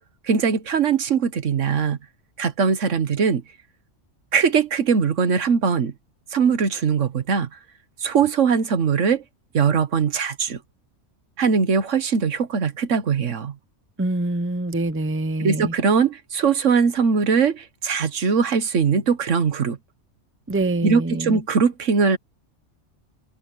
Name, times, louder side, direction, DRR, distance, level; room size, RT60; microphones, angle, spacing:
voice 1, 0.2-2.0 2.4-3.4 4.3-5.9 6.3-7.5 8.0-9.2 9.5-10.6 11.4-13.5 15.4-19.8 20.8-22.2, right 6 dB, 75° right, 1.5 m, -21 dB
voice 2, 14.0-15.7 20.5-21.4, right 2 dB, 15° right, 0.7 m, -25 dB
omnidirectional pair, 1.3 m